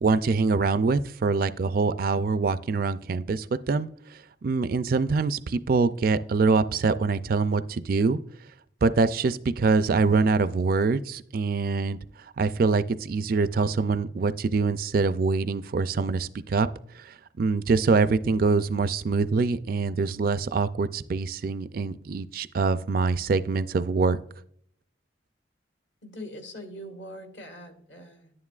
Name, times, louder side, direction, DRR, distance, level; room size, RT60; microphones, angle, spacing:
voice 1, 0.0-8.2 8.8-12.0 12.4-16.7 17.0-24.2, right 4 dB, 50° right, 0.4 m, -24 dB
voice 2, 26.0-28.3, equal, 70° left, 1.6 m, -42 dB
11.5 x 9.5 x 2.4 m
head